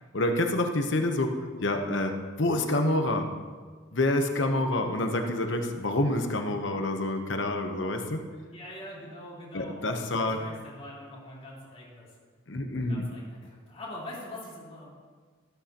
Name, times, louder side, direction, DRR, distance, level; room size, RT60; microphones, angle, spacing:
voice 1, 0.1-3.3 3.9-8.2 9.5-10.4 12.5-13.0, left 1 dB, 65° left, 5 dB, 1.0 m, -27 dB
voice 2, 8.5-9.7 10.2-12.1 12.6-14.9, left 1 dB, 30° left, -7 dB, 3.8 m, -43 dB
13.5 x 13.5 x 3.0 m, 1.5 s
head